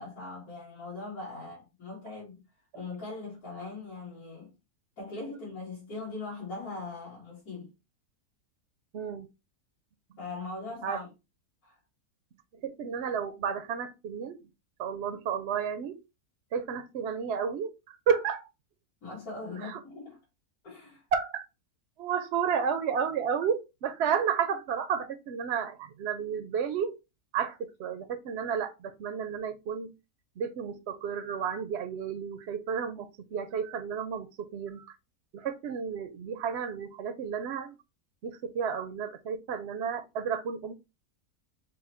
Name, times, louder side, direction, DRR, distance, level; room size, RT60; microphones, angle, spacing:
voice 1, 0.0-2.4 2.7-4.5 5.0-7.7 10.2-11.1 11.6-11.8 19.0-20.2 20.6-21.0, left 3 dB, 70° left, 2.5 m, -40 dB
voice 2, 8.9-9.3 10.8-11.0 12.6-14.4 14.8-16.0 16.5-18.5 19.6-19.8 21.1-21.4 22.0-26.9 27.3-29.9 30.4-34.9 35.3-37.7 38.2-40.7, right 7 dB, 65° right, 0.7 m, -32 dB
5.5 x 2.2 x 4.2 m
omnidirectional pair, 1.6 m